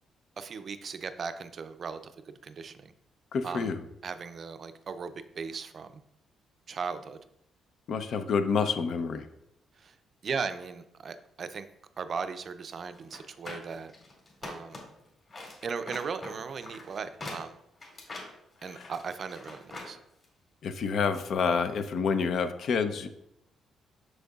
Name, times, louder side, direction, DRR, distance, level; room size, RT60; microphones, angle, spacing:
voice 1, 0.4-2.1 2.4-2.9 3.4-3.7 4.0-6.0 6.7-7.2 9.8-9.9 10.2-11.7 12.0-13.9 14.4-14.8 15.6-17.6 18.6-19.6 19.9-20.0, right 5 dB, 50° right, 10 dB, 0.5 m, -37 dB
voice 2, 3.3-3.8 7.9-9.3 18.7-18.9 20.6-23.1, left 5 dB, 65° left, 9 dB, 0.6 m, -28 dB
sound 1, 13.0-15.0 15.3-19.9 20.2-20.3, left 2 dB, 40° left, 2.4 m, -43 dB
6.5 x 6.3 x 2.4 m, 0.79 s
cardioid pair, 90°, 0 cm